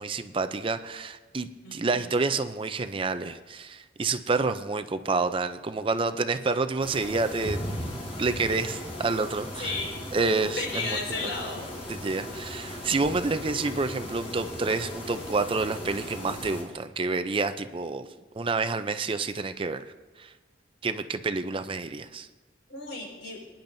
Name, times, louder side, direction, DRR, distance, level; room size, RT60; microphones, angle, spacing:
voice 1, 0.0-7.6 8.2-9.7 10.1-11.3 11.9-18.1 18.3-19.8 20.2-20.3 20.8-22.3, right 3 dB, 30° right, 10 dB, 0.4 m, -28 dB
voice 2, 1.6-2.1 9.6-10.0 10.5-11.7 22.7-23.4, left 3 dB, 75° left, -1 dB, 4.9 m, -33 dB
sound 1, 6.8-16.6, equal, 35° left, 4.2 m, -37 dB
23.0 x 10.5 x 2.7 m, 1.3 s
head